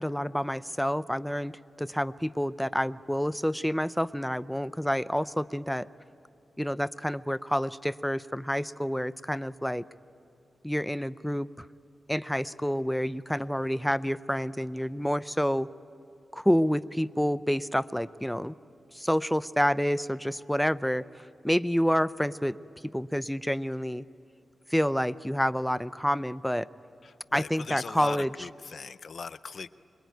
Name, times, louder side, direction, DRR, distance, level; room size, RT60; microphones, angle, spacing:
voice 1, 0.0-5.9 6.6-9.8 10.6-11.7 12.1-15.7 16.3-18.6 18.9-21.0 21.4-22.6 22.8-24.1 24.7-26.7 27.3-28.3, equal, 5° left, 15 dB, 0.5 m, -28 dB
voice 2, 27.0-29.7, left 5 dB, 60° left, 14 dB, 0.6 m, -39 dB
25.5 x 22.0 x 9.2 m, 2.7 s
cardioid pair, 85°, 0 cm